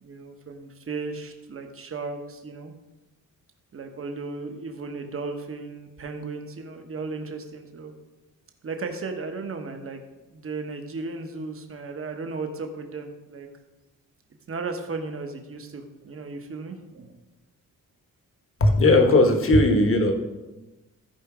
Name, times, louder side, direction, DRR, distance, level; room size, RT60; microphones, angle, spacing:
voice 1, 0.0-2.7 3.7-7.9 8.6-10.0 10.3-13.5 14.5-17.2, right 3 dB, 40° right, 5 dB, 1.2 m, -35 dB
voice 2, 18.6-20.1, left 2 dB, 40° left, 5 dB, 1.2 m, -17 dB
14.5 x 5.0 x 4.9 m, 1.1 s
wide cardioid pair, 160°, 33 cm